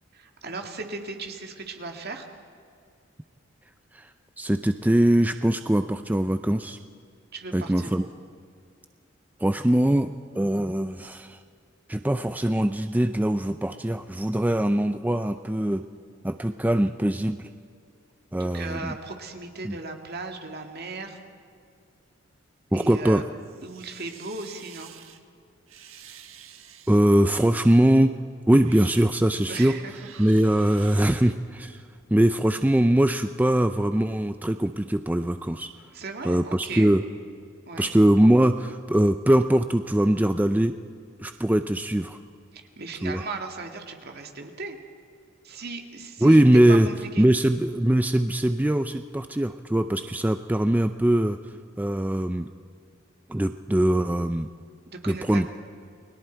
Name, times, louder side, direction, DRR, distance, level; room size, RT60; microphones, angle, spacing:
voice 1, 0.1-2.3 7.3-8.1 18.4-21.2 22.7-23.2 23.6-24.9 29.5-29.9 31.1-31.2 35.9-36.9 37.7-37.9 42.5-44.8 45.4-46.4 46.7-47.3 54.9-55.5, right 3 dB, 50° right, 4 dB, 2.2 m, -37 dB
voice 2, 4.4-6.8 7.5-8.0 9.4-11.4 11.9-15.8 16.2-17.5 18.3-18.9 19.6-19.8 22.7-23.2 26.9-28.1 28.5-29.7 30.2-31.8 32.1-35.7 36.2-37.0 37.8-40.7 41.2-42.2 43.0-43.2 46.2-46.9 47.2-51.4 51.8-52.5 53.3-54.5 55.1-55.5, right 1 dB, 10° right, 9 dB, 0.4 m, -22 dB
sound 1, 23.4-25.2 25.7-27.2 27.9-28.1 28.5-29.1 29.8-31.3, right 8 dB, 80° right, 1.5 m, -48 dB
29.5 x 21.0 x 4.6 m, 2.3 s
head